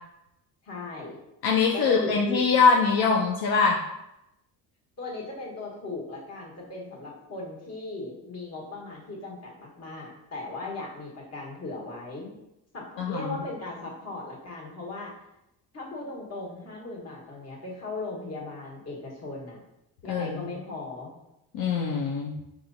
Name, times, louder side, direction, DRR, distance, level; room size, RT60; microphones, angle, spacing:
voice 1, 0.6-1.2 1.7-2.5 5.0-12.3 12.7-15.1 15.7-19.6 20.0-21.1, left 2 dB, 40° left, -3 dB, 1.3 m, -37 dB
voice 2, 1.4-3.8 13.0-13.3 20.1-20.4 21.5-22.3, left 5 dB, 70° left, 0 dB, 0.6 m, -23 dB
4.7 x 2.9 x 2.6 m, 0.87 s
cardioid pair, 120°, 38 cm